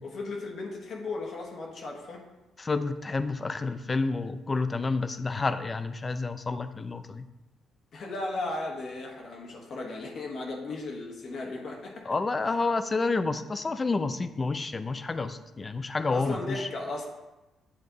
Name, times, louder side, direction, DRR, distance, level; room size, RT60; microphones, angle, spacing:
voice 1, 0.0-2.2 7.9-12.1 16.1-17.1, left 2 dB, 60° left, 0 dB, 1.2 m, -36 dB
voice 2, 2.6-7.3 12.0-16.7, left 3 dB, 30° left, 11 dB, 0.4 m, -29 dB
8.5 x 3.4 x 3.9 m, 1.0 s
cardioid pair, 90°, 0 cm